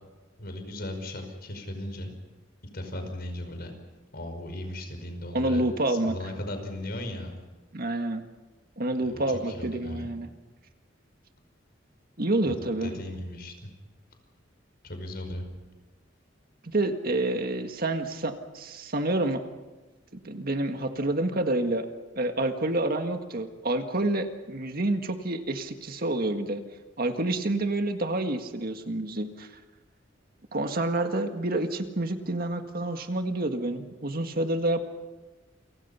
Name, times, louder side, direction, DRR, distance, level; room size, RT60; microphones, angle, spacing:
voice 1, 0.4-2.1 2.7-3.7 4.1-7.4 9.0-10.1 12.5-13.7 14.8-15.5, left 1 dB, 55° left, 6 dB, 5.3 m, -37 dB
voice 2, 5.3-6.2 7.7-8.2 8.8-10.3 12.2-12.9 16.6-19.4 20.2-21.9 22.2-26.6 27.0-29.5 30.5-34.8, right 2 dB, 50° right, 6 dB, 1.8 m, -28 dB
29.0 x 24.5 x 5.7 m, 1.2 s
head